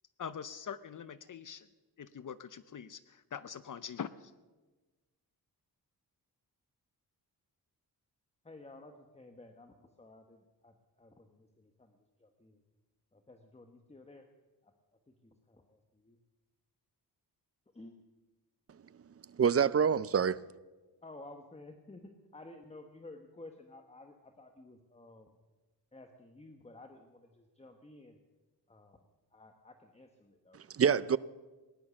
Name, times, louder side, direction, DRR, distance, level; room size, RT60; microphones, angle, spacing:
voice 1, 0.2-1.7 2.0-4.3, left 7 dB, 50° left, 0.7 m, -43 dB
voice 2, 8.4-12.6 13.1-14.3 14.6-14.7 15.1-16.2 17.7-18.0 21.0-25.3 25.9-28.2 28.7-29.0 29.3-30.6, left 2 dB, 15° left, 1.2 m, -54 dB
voice 3, 19.4-20.4 30.7-31.2, right 7 dB, 40° right, 0.5 m, -26 dB
18.5 x 11.0 x 7.1 m
wide cardioid pair, 100°, 39 cm